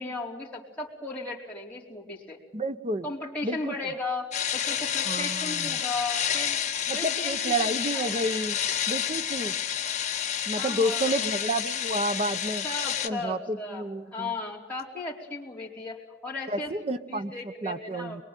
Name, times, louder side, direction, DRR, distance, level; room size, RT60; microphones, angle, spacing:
voice 1, 0.0-2.4 3.0-4.3 4.5-6.6 6.9-8.3 9.4-9.6 10.6-11.1 12.6-18.2, left 3 dB, 10° left, -5 dB, 4.5 m, -36 dB
voice 2, 2.5-3.1 3.4-3.7 5.1-5.8 6.9-8.6 8.9-9.6 10.5-12.6 13.0-14.3 16.5-18.2, right 1 dB, 35° right, 10 dB, 0.9 m, -30 dB
sound 1, 4.3-13.1, left 9 dB, 40° left, 1.3 m, -29 dB
23.0 x 23.0 x 9.2 m, 1.1 s
head